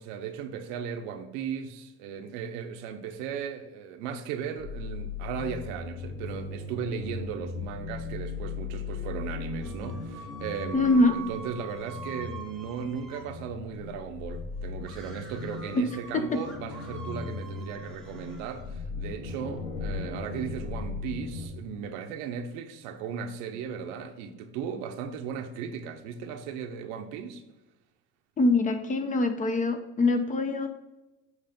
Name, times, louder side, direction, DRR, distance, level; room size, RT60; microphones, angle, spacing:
voice 1, 0.0-27.4, right 7 dB, 70° right, 0.9 m, -36 dB
sound 1, 4.6-21.5, left 4 dB, 60° left, 2.6 m, -38 dB
sound 2, 9.6-13.3 14.8-18.7, right 3 dB, ahead, 1.1 m, -45 dB
voice 2, 10.7-11.1 15.8-15.9 16.1-16.4 28.4-30.7, left 2 dB, 25° left, 0.7 m, -24 dB
8.0 x 3.2 x 5.2 m
supercardioid pair, 120°, 33 cm